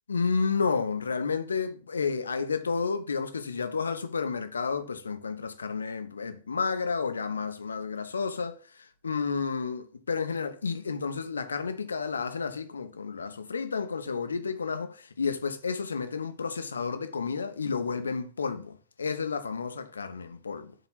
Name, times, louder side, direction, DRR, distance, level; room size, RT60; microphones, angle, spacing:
voice 1, 0.1-20.7, left 5 dB, 75° left, 0.7 m, -31 dB
7.3 x 2.9 x 5.8 m
figure-of-eight pair, 90°, 0 cm